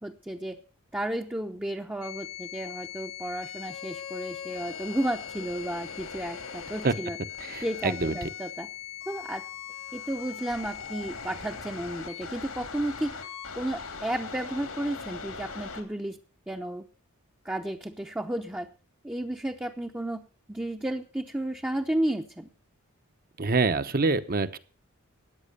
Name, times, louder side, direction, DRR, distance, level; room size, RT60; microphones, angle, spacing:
voice 1, 0.0-0.6 0.9-7.2 7.6-8.7 9.1-9.4 9.9-13.1 13.6-16.2 16.5-16.8 17.4-18.7 19.0-20.2 20.5-22.5, right 1 dB, 10° right, 2 dB, 0.8 m, -32 dB
sound 1, 2.0-15.8, left 7 dB, 85° left, 3.0 m, -40 dB
voice 2, 7.4-8.3 23.4-24.6, right 3 dB, 45° right, 12 dB, 1.0 m, -26 dB
14.0 x 9.4 x 6.7 m, 0.39 s
head